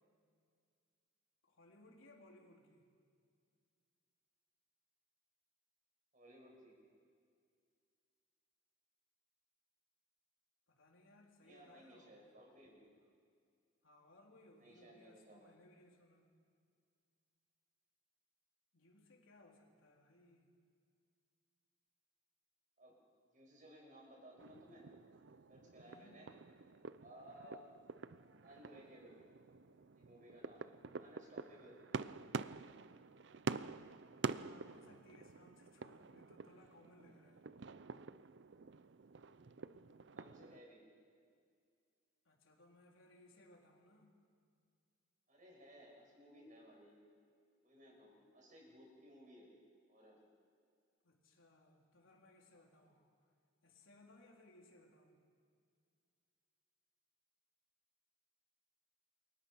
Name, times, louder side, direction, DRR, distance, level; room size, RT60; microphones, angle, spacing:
voice 1, 1.4-2.9 10.7-12.2 13.8-16.4 18.7-20.5 25.8-26.2 34.3-37.5 42.2-44.2 51.0-53.0 53.6-55.2, left 1 dB, 80° left, -1 dB, 4.0 m, -64 dB
voice 2, 6.1-6.7 11.4-12.9 14.6-15.5 22.8-23.0 23.3-24.9 25.5-26.3 27.0-27.6 28.4-29.2 29.9-31.8 40.2-40.9 45.3-47.1 47.6-49.5 49.9-50.2 52.8-53.0, equal, 40° right, -1 dB, 6.7 m, -59 dB
sound 1, 24.4-40.6, right 4 dB, 60° right, 0.5 m, -48 dB
28.0 x 23.0 x 5.8 m, 2.2 s
head